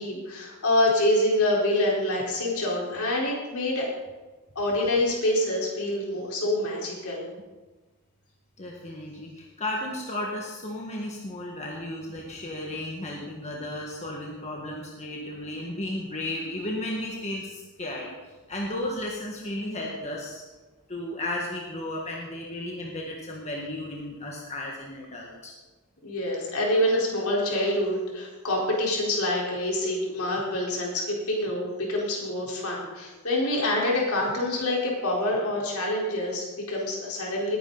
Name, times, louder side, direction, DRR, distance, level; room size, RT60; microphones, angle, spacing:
voice 1, 0.0-3.9 4.5-7.3 26.0-37.6, left 1 dB, 70° left, -3 dB, 4.3 m, -26 dB
voice 2, 8.6-20.4 20.9-25.5, left 1 dB, 30° left, -2 dB, 1.7 m, -34 dB
20.0 x 10.0 x 4.1 m, 1.2 s
head